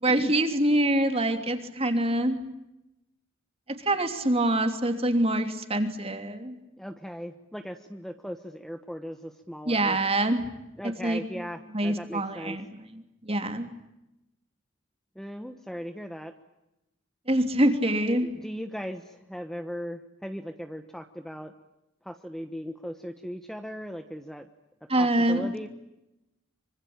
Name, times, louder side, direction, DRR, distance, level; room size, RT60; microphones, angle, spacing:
voice 1, 0.0-2.4 3.8-6.6 9.7-10.5 11.0-11.4 11.7-13.7 17.3-18.3 24.9-25.5, right 1 dB, 30° right, 7 dB, 3.1 m, -25 dB
voice 2, 6.8-10.0 10.8-12.6 15.1-16.3 17.9-21.5 22.0-24.5 25.0-25.7, equal, ahead, 7 dB, 1.2 m, -38 dB
25.5 x 25.0 x 8.8 m, 0.92 s
head